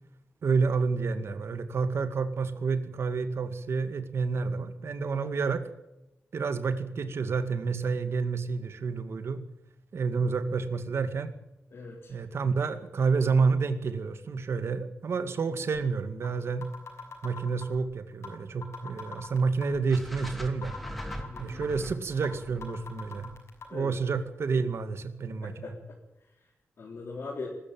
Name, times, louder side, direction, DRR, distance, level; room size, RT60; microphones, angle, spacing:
voice 1, 0.4-5.6 6.3-9.4 9.9-11.3 12.1-16.6 17.2-20.7 21.4-23.3 23.7-25.7, right 4 dB, 65° right, 10 dB, 2.1 m, -29 dB
voice 2, 11.7-12.2 21.3-21.7 23.7-24.0 25.4-25.8 26.4-26.5 26.8-27.5, left 4 dB, 60° left, -1 dB, 3.8 m, -40 dB
sound 1, 16.2-16.3 16.6-17.8 18.2-18.4 18.6-19.8 20.2-20.3 20.6-21.8 22.2-22.3 22.6-23.6, left 5 dB, 85° left, 6.4 m, -41 dB
sound 2, 19.9-24.1, equal, ahead, 2.8 m, -41 dB
21.5 x 13.5 x 9.2 m, 0.91 s
wide cardioid pair, 130°, 5 cm